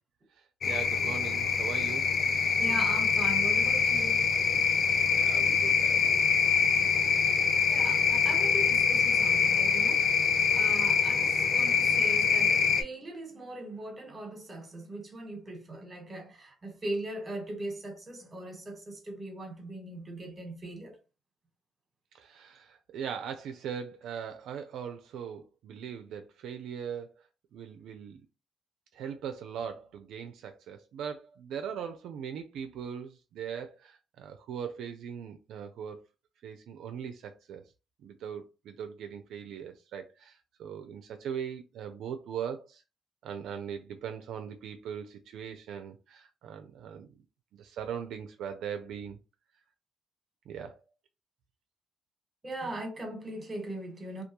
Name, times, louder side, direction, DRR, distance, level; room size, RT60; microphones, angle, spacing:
voice 1, 0.3-2.1 5.1-6.2 9.7-9.9 22.1-27.3 27.5-28.2 28.9-36.0 36.4-37.6 38.0-42.8 43.2-47.2 47.5-49.2 50.5-50.8, right 8 dB, 80° right, 0.4 m, -40 dB
sound 1, 0.6-12.8, left 6 dB, 50° left, 0.4 m, -25 dB
voice 2, 2.6-4.3 7.7-10.0 10.5-21.0 52.4-54.2, right 2 dB, 30° right, 1.1 m, -39 dB
2.3 x 2.2 x 2.9 m
cardioid pair, 90°, 0 cm